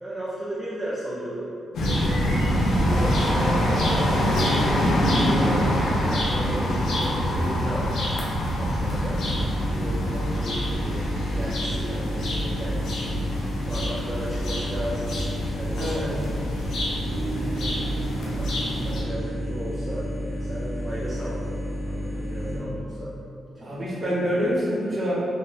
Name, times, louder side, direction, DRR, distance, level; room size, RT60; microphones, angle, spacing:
voice 1, 0.0-1.5 1.8-7.9 8.4-9.2 9.7-13.1 13.7-16.2 16.6-16.8 17.4-21.6 21.8-23.1 24.0-24.2, right 1 dB, 10° right, -9 dB, 0.4 m, -35 dB
sound 1, 1.7-19.0, equal, 80° left, 0.6 m, -25 dB
sound 2, 8.9-22.6, equal, 25° left, 1.0 m, -31 dB
voice 2, 15.8-16.3 22.3-22.7 23.6-25.1, equal, 30° right, -7 dB, 0.8 m, -27 dB
sound 3, 17.1-23.5, right 3 dB, 70° right, 0.4 m, -38 dB
2.6 x 2.1 x 3.9 m, 2.5 s
cardioid pair, 135°, 0 cm